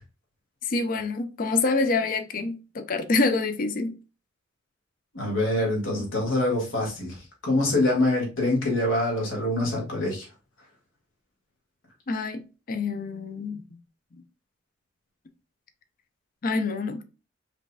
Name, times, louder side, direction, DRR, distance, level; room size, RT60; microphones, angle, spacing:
voice 1, 0.6-3.9 12.1-13.6 16.4-17.0, left 3 dB, 45° left, 0.5 m, -26 dB
voice 2, 5.1-10.3, left 1 dB, 85° left, 1.9 m, -25 dB
5.1 x 3.2 x 2.2 m
head